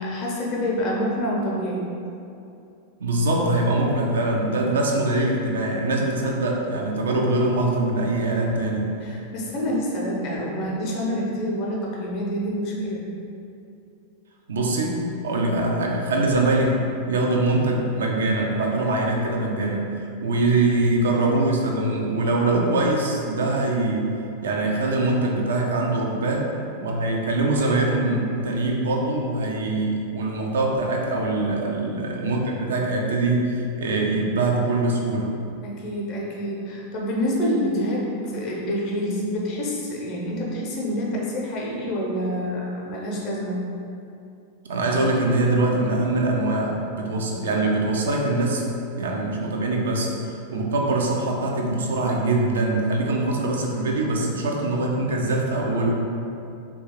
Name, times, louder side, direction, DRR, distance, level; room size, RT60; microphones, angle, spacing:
voice 1, 0.0-1.9 9.0-13.0 31.3-31.8 35.6-43.6, equal, 40° left, -3 dB, 0.6 m, -27 dB
voice 2, 3.0-8.9 14.5-19.9 20.2-24.1 24.4-35.3 44.7-48.6 48.9-55.9, right 2 dB, 65° right, -1 dB, 0.4 m, -23 dB
3.0 x 2.2 x 2.9 m, 2.7 s
figure-of-eight pair, 90°, 0 cm